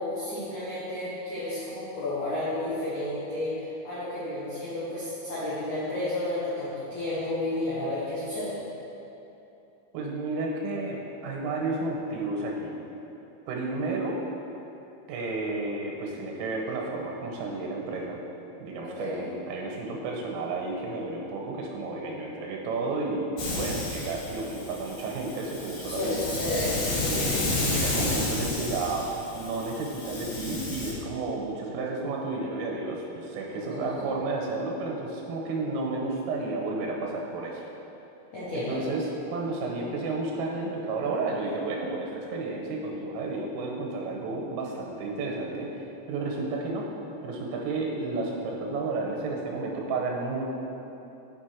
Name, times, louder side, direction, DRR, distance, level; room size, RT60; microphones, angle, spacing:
voice 1, 0.0-8.6 18.8-19.3 25.8-27.2 33.5-34.1 38.3-38.8, left 1 dB, 85° left, -10 dB, 1.7 m, -32 dB
voice 2, 9.9-12.8 13.5-14.2 15.1-18.2 18.6-26.2 27.1-37.7 38.5-45.8 46.1-46.9 47.2-50.4, right 3 dB, 85° right, -1 dB, 3.6 m, -32 dB
Hiss, 23.4-30.9, left 2 dB, 65° left, 2.8 m, -31 dB
7.2 x 6.8 x 4.5 m, 3.0 s
omnidirectional pair, 5.8 m